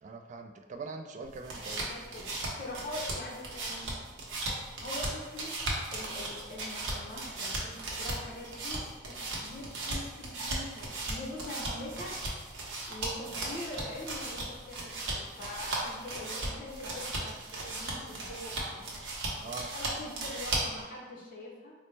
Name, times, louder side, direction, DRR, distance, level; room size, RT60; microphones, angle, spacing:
voice 1, 0.0-1.8 19.4-19.7, right 3 dB, 40° right, 4 dB, 0.3 m, -42 dB
sound 1, 1.2-20.8, right 2 dB, 80° right, 0.8 m, -37 dB
voice 2, 1.8-3.9 4.8-5.6 5.9-12.2 12.9-18.9 19.7-21.7, left 1 dB, 50° left, -2 dB, 0.7 m, -43 dB
4.0 x 2.0 x 3.2 m, 1.3 s
head